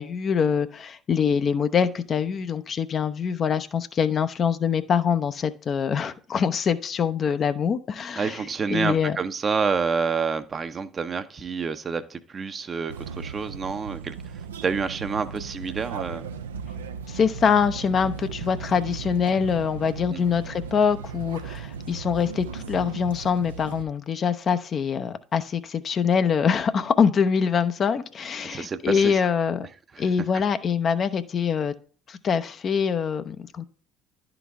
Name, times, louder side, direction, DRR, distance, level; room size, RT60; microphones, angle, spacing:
voice 1, 0.0-9.2 17.1-29.7 30.0-31.7 32.1-33.6, left 6 dB, 45° left, 10 dB, 0.5 m, -24 dB
voice 2, 8.2-14.1 14.6-16.3 20.1-20.2 28.4-29.2 29.9-30.1, right 5 dB, 35° right, 10 dB, 0.6 m, -28 dB
sound 1, 12.9-23.8, right 6 dB, 85° right, 0.4 m, -37 dB
11.0 x 3.9 x 3.5 m, 0.42 s
hypercardioid pair, 60°, 0 cm